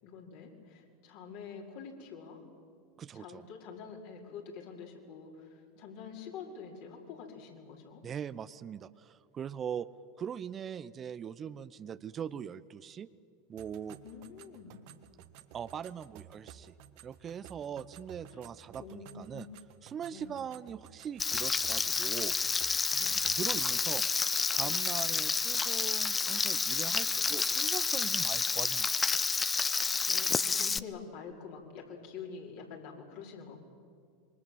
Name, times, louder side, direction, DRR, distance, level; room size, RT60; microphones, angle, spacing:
voice 1, 0.0-2.4 3.1-8.0 14.0-14.8 18.2-18.5 18.8-19.6 20.1-20.3 23.0-23.2 30.1-33.6, left 6 dB, 60° left, -1 dB, 5.3 m, -46 dB
voice 2, 3.0-3.4 8.0-9.9 10.2-13.1 13.5-14.0 15.5-16.7 17.0-19.5 19.8-22.4 23.3-24.0 24.5-29.2, right 8 dB, 35° right, 15 dB, 0.8 m, -41 dB
sound 1, 13.6-23.9, right 11 dB, 60° right, 1.5 m, -54 dB
Frying (food), 21.2-30.8, left 4 dB, 20° left, 0.7 m, -30 dB
26.5 x 23.5 x 7.7 m, 2.3 s
hypercardioid pair, 85°, 0 cm